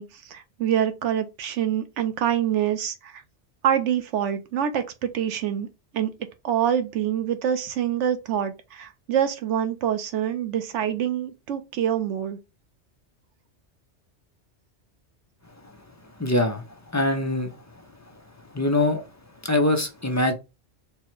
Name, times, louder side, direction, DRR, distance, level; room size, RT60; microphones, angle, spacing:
voice 1, 0.0-3.2 3.6-5.7 5.9-6.1 6.4-12.4, right 9 dB, 90° right, 1.0 m, -26 dB
voice 2, 16.2-16.6 16.9-17.6 18.5-19.0 19.4-20.3, left 1 dB, 25° left, 0.4 m, -23 dB
4.4 x 2.1 x 4.4 m
omnidirectional pair, 1.2 m